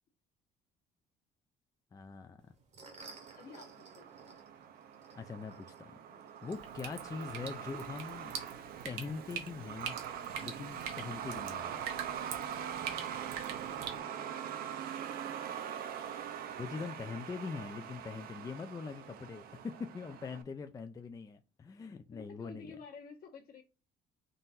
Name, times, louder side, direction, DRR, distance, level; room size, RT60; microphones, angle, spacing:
voice 1, 1.9-2.4 5.2-6.0 6.4-8.4 8.8-9.9 10.4-11.8 16.6-22.7, left 5 dB, 20° left, 0.4 m, -42 dB
sound 1, 2.4-7.6, right 3 dB, 40° right, 0.9 m, -57 dB
Truck, 3.0-20.4, right 9 dB, 60° right, 0.6 m, -43 dB
voice 2, 3.3-4.1 6.1-6.6 12.4-13.4 13.7-14.7 22.1-23.6, left 5 dB, 60° left, 1.3 m, -54 dB
Drip, 6.5-14.0, right 7 dB, 90° right, 0.9 m, -45 dB
3.8 x 2.5 x 4.1 m
cardioid pair, 110°, 17 cm